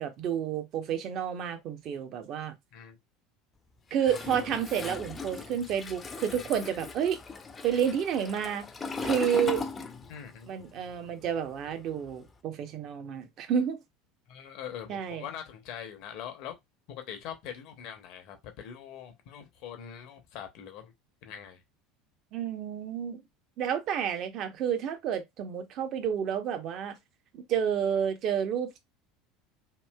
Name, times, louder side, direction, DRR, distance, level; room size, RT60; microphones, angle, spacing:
voice 1, 0.0-2.5 3.9-7.2 7.6-8.7 9.0-9.6 10.5-13.8 14.9-15.2 22.3-23.2 23.6-27.0 27.3-28.8, right 8 dB, 50° right, 0.7 m, -30 dB
Toilet flush, 4.0-10.4 10.7-12.3, left 4 dB, 25° left, 0.5 m, -39 dB
voice 2, 10.1-10.7 14.3-16.6 16.9-20.9 21.2-21.6, left 9 dB, 60° left, 0.7 m, -43 dB
3.0 x 2.7 x 2.2 m
hypercardioid pair, 75°, 0 cm